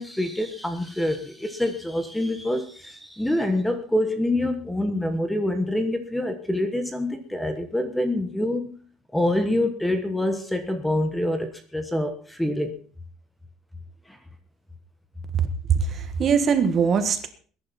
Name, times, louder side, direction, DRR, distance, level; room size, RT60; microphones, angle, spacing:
voice 1, 0.0-8.7 9.1-12.7, left 1 dB, 5° left, 8 dB, 1.2 m, -26 dB
voice 2, 15.7-17.3, right 6 dB, 30° right, 9 dB, 1.5 m, -21 dB
20.5 x 10.5 x 4.3 m, 0.43 s
cardioid pair, 175°, 0 cm